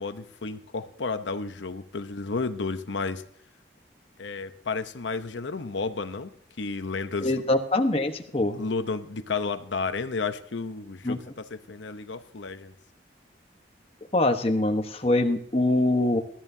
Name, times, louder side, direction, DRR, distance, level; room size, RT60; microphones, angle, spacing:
voice 1, 0.0-3.2 4.2-6.3 6.6-7.3 8.5-12.7, left 4 dB, 85° left, 9 dB, 0.8 m, -32 dB
voice 2, 7.2-8.6 11.0-11.2 14.1-16.2, left 2 dB, 30° left, 5 dB, 1.1 m, -24 dB
20.0 x 13.0 x 2.7 m, 0.66 s
head